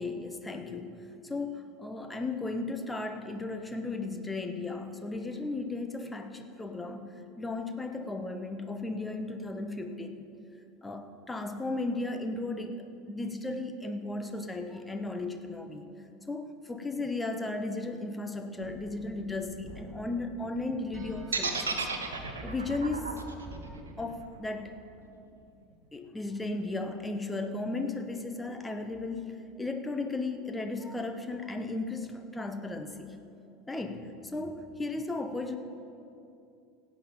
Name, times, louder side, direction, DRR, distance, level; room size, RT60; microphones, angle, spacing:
voice 1, 0.0-10.2 10.8-15.8 16.3-21.8 22.4-23.3 23.6-24.8 25.9-33.1 33.7-35.6, left 2 dB, 10° left, 7 dB, 1.0 m, -35 dB
sound 1, 18.6-24.0, right 2 dB, 35° right, 1.7 m, -47 dB
sound 2, 21.3-25.4, right 4 dB, 80° right, 1.1 m, -34 dB
16.0 x 8.9 x 5.2 m, 2.6 s
figure-of-eight pair, 75°, 0 cm